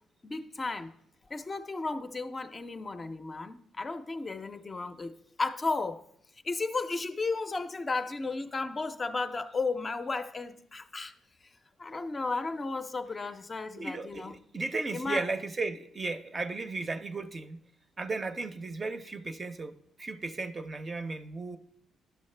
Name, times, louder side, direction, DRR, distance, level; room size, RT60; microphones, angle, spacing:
voice 1, 0.2-0.9 1.3-6.0 6.4-11.1 11.4-11.5 11.8-14.4 14.9-15.3, left 3 dB, 30° left, 0.5 m, -34 dB
voice 2, 13.8-17.6 18.0-19.7 20.0-21.6, right 3 dB, 35° right, 0.5 m, -35 dB
11.0 x 6.3 x 3.2 m
cardioid pair, 90°, 0 cm